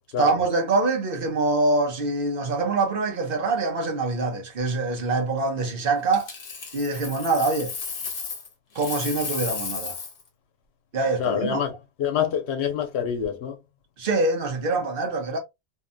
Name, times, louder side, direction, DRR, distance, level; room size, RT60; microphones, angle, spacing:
voice 1, 0.2-6.3 6.7-7.7 8.7-10.0 10.9-11.6 14.0-15.4, right 3 dB, 60° right, 1.0 m, -24 dB
Coin (dropping), 6.1-8.5 8.7-10.2 13.0-13.2, left 5 dB, 60° left, 1.0 m, -34 dB
voice 2, 11.2-11.7 12.0-13.6, left 8 dB, 80° left, 1.0 m, -26 dB
2.8 x 2.2 x 2.5 m
omnidirectional pair, 1.1 m